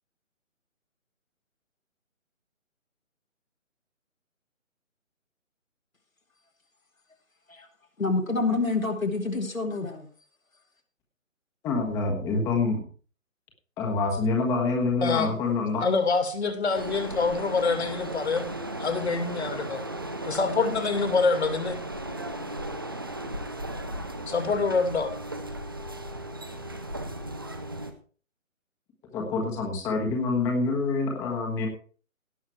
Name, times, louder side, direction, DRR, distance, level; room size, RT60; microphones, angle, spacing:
voice 1, 8.0-10.1, left 3 dB, 80° left, 2.9 m, -27 dB
voice 2, 11.6-12.8 13.8-15.8 29.1-31.7, left 3 dB, 10° left, 1.3 m, -26 dB
voice 3, 15.0-15.3 15.8-18.5 18.8-19.8 20.2-21.8 24.3-25.1, left 4 dB, 55° left, 2.5 m, -26 dB
sound 1, 16.7-27.9, right 1 dB, 20° right, 0.6 m, -36 dB
17.5 x 6.3 x 4.6 m
figure-of-eight pair, 150°, 40 cm